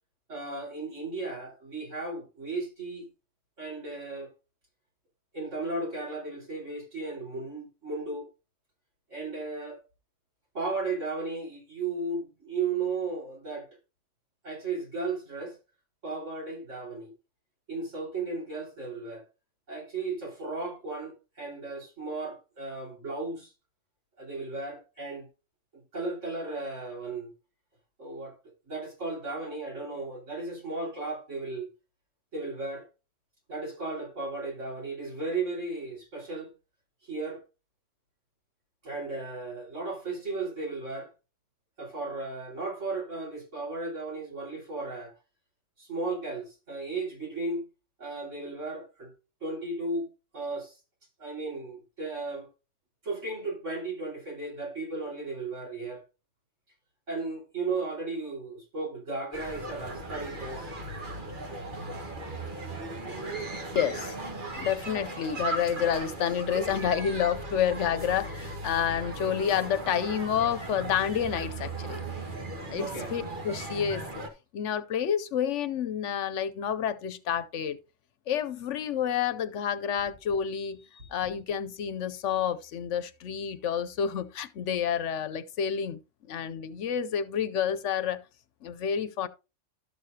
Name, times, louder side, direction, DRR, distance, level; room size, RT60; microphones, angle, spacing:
voice 1, 0.3-3.1 3.6-4.3 5.3-8.3 9.1-9.8 10.5-13.7 14.4-15.6 16.0-17.1 17.7-19.2 19.7-23.5 24.2-25.3 25.7-27.3 28.0-28.4 28.6-31.7 32.3-32.9 33.5-36.5 37.0-37.4 38.8-41.1 41.8-45.1 45.8-47.6 48.0-49.1 49.4-50.7 51.2-52.5 53.0-56.0 57.1-60.7 72.7-73.2, right 3 dB, 80° right, 4.9 m, -35 dB
sound 1, 59.3-74.3, right 2 dB, 45° right, 1.6 m, -37 dB
voice 2, 63.7-64.2 64.6-72.0 72.7-74.1 74.5-77.8 78.3-80.8 81.1-86.0 86.3-88.2 88.6-89.3, left 8 dB, 75° left, 1.0 m, -29 dB
12.5 x 6.6 x 2.8 m
omnidirectional pair, 1.3 m